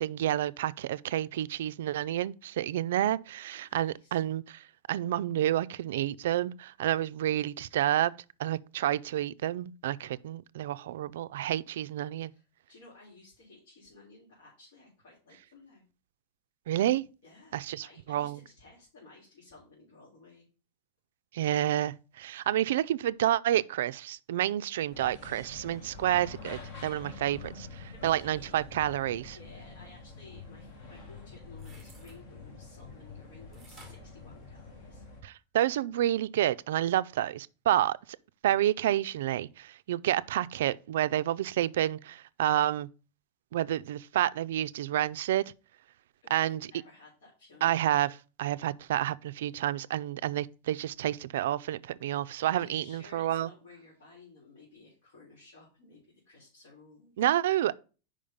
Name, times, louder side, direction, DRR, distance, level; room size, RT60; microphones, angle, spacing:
voice 1, 0.0-8.1 8.4-12.3 16.7-17.0 17.5-18.4 21.3-29.4 35.2-38.0 38.4-42.9 43.5-45.4 46.3-46.6 47.6-53.5 57.2-57.7, right 12 dB, 75° right, 0.3 m, -29 dB
voice 2, 3.5-4.2 12.2-15.8 17.2-20.5 22.3-22.5 27.9-28.7 29.3-35.1 46.2-47.8 52.6-57.3, left 3 dB, 75° left, 3.2 m, -55 dB
sound 1, 24.9-35.2, left 4 dB, 40° left, 1.7 m, -47 dB
sound 2, 31.5-32.2 33.5-35.1 35.6-35.7, right 2 dB, ahead, 1.3 m, -56 dB
5.1 x 5.1 x 5.4 m
supercardioid pair, 180°, 0 cm